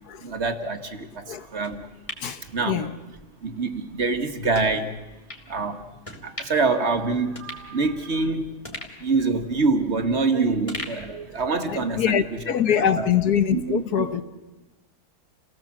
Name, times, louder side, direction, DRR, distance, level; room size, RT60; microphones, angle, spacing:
voice 1, 0.2-1.9 2.5-2.8 3.4-5.0 5.5-5.9 6.2-8.6 9.0-12.2 12.7-13.1 13.5-14.1, right 3 dB, 45° right, 1.7 m, -25 dB
sound 1, 1.6-3.2 3.6-3.7 4.5-4.7 5.3-5.5 6.0-6.7 7.0-7.1 7.4-8.2 8.6-10.2 10.7-11.8 12.2-12.3, left 1 dB, 20° left, 3.0 m, -40 dB
voice 2, 2.2-3.0 11.7-14.2, left 9 dB, 75° left, 1.7 m, -24 dB
29.0 x 18.0 x 7.4 m
omnidirectional pair, 1.7 m